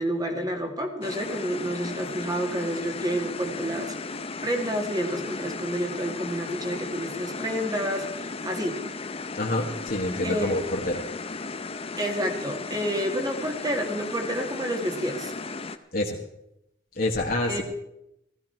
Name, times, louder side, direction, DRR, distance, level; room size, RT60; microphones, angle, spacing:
voice 1, 0.0-4.0 4.4-8.8 10.2-10.6 12.0-15.3 17.5-17.6, equal, 20° right, 4 dB, 2.0 m, -29 dB
sound 1, 1.0-15.8, left 3 dB, 30° left, 0.7 m, -35 dB
voice 2, 9.3-11.0 15.9-16.2 16.9-17.6, left 1 dB, 50° left, 0 dB, 1.5 m, -27 dB
16.0 x 14.5 x 4.5 m, 0.81 s
head